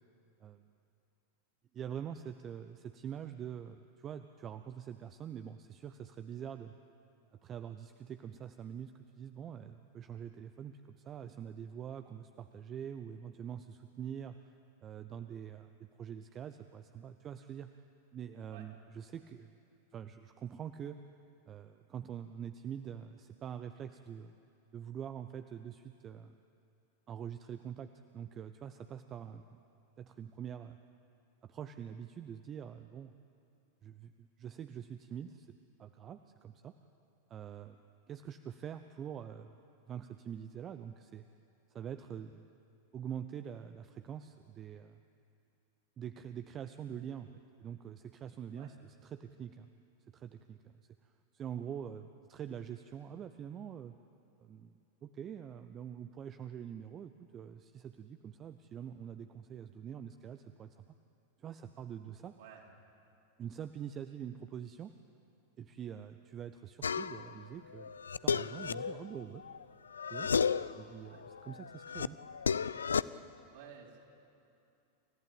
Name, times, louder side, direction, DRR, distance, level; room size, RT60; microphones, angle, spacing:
voice 1, 1.7-6.7 7.4-8.9 9.2-14.4 14.8-17.8 18.1-19.6 19.9-21.0 21.5-24.3 24.7-26.4 27.1-29.6 30.0-30.8 31.4-33.1 33.8-35.5 35.8-36.7 37.3-37.8 38.1-39.6 39.9-41.2 41.7-42.5 42.9-45.0 46.0-47.3 47.6-49.7 50.1-53.9 54.4-60.9 61.4-62.4 63.4-64.9 65.6-68.0 68.2-69.4 70.1-70.3 70.8-72.2, right 8 dB, 30° right, 10 dB, 0.7 m, -45 dB
sound 1, 66.8-67.3 67.8-69.6 69.9-70.8 71.2-73.0, left 6 dB, 70° left, 0.4 m, -33 dB
voice 2, 73.5-74.0, right 8 dB, 55° right, -1 dB, 4.4 m, -53 dB
28.5 x 14.5 x 8.8 m, 2.7 s
figure-of-eight pair, 90°, 0 cm